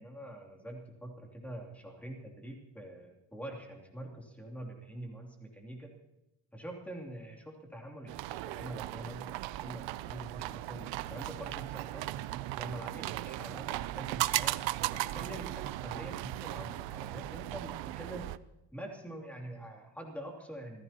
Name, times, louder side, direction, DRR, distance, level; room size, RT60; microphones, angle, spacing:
voice 1, 0.0-5.9 6.5-12.1 12.6-14.6 14.9-18.3 18.7-20.8, right 1 dB, 5° left, 0 dB, 2.9 m, -45 dB
sound 1, 8.1-18.4, right 16 dB, 70° right, 0.7 m, -37 dB
27.0 x 16.0 x 3.0 m, 0.94 s
cardioid pair, 165°, 46 cm